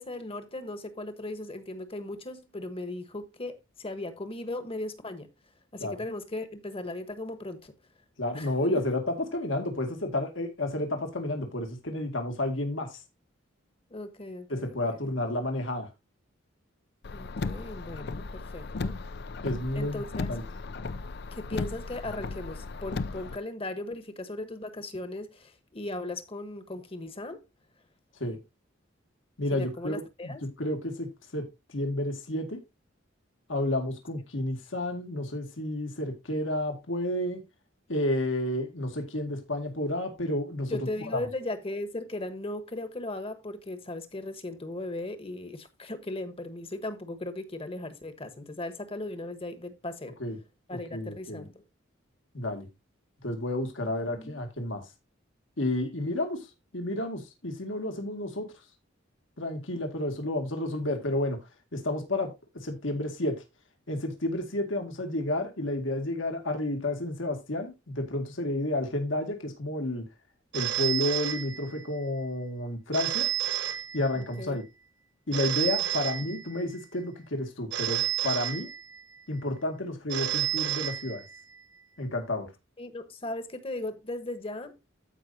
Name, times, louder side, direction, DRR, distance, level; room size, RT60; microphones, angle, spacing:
voice 1, 0.0-5.3 5.7-7.7 8.3-8.5 13.9-15.0 17.1-19.0 19.8-20.3 21.3-27.4 29.5-30.5 40.7-50.2 50.7-51.6 53.8-53.9 54.2-54.4 74.1-74.6 82.8-84.8, left 2 dB, 30° left, 1.2 m, -37 dB
voice 2, 8.2-13.0 14.5-15.9 19.4-20.0 20.3-20.4 28.2-28.4 29.4-30.3 30.6-32.6 33.5-37.4 37.9-40.8 50.2-50.4 50.7-51.4 52.3-52.7 53.2-54.8 55.6-56.4 56.7-58.5 59.4-61.4 61.7-63.4 63.9-70.0 70.5-73.3 73.9-74.6 75.3-78.7 79.3-81.2 82.0-82.5, left 1 dB, 75° left, 2.2 m, -31 dB
Car, 17.0-23.4, left 3 dB, 55° left, 0.5 m, -36 dB
Telephone, 70.5-72.0 72.9-74.4 75.3-76.8 77.7-79.2 80.1-81.6, right 11 dB, 60° right, 1.4 m, -31 dB
14.5 x 5.3 x 2.7 m
head